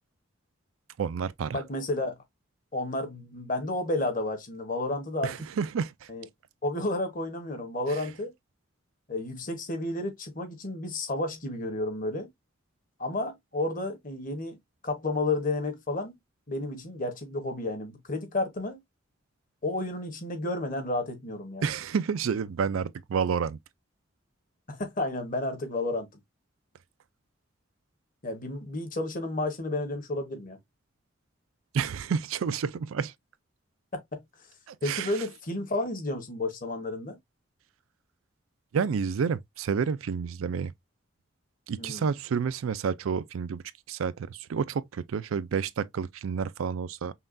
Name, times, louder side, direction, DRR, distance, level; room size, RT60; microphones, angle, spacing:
voice 1, 1.0-1.6 5.2-6.1 21.6-23.6 31.7-33.1 34.7-35.1 38.7-40.7 41.7-43.6 43.9-47.1, right 6 dB, 85° right, 0.4 m, -30 dB
voice 2, 1.5-2.2 2.7-5.3 6.1-6.3 6.6-8.3 9.1-12.3 13.0-14.6 14.8-16.2 16.5-18.8 19.6-21.6 24.7-26.1 28.2-30.6 33.9-34.2 34.8-37.2 41.8-42.1, left 2 dB, 40° left, 1.1 m, -31 dB
5.6 x 2.3 x 2.5 m
head